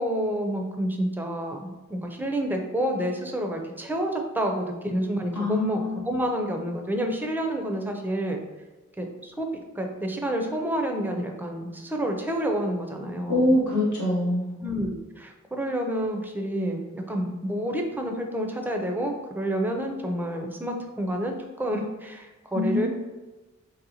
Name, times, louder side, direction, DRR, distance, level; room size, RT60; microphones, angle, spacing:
voice 1, 0.0-8.4 9.0-9.5 9.8-13.5 14.6-22.9, right 1 dB, 5° right, 2 dB, 0.4 m, -29 dB
voice 2, 5.3-6.1 13.3-14.5 22.5-22.9, left 1 dB, 75° left, -6 dB, 1.1 m, -24 dB
2.7 x 2.1 x 2.8 m, 1.1 s
cardioid pair, 50°, 29 cm